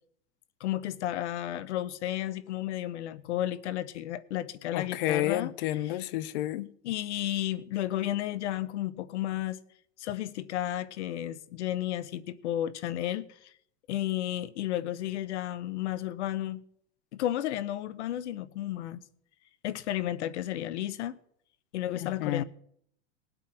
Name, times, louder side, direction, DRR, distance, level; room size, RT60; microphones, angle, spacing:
voice 1, 0.6-5.5 6.8-9.6 10.0-13.3 13.9-16.6 17.1-19.0 19.6-21.2 21.7-22.4, left 13 dB, 75° left, 1.0 m, -32 dB
voice 2, 4.7-6.7 21.9-22.4, left 14 dB, 50° left, 0.6 m, -30 dB
18.5 x 8.3 x 6.0 m
supercardioid pair, 175°, 34 cm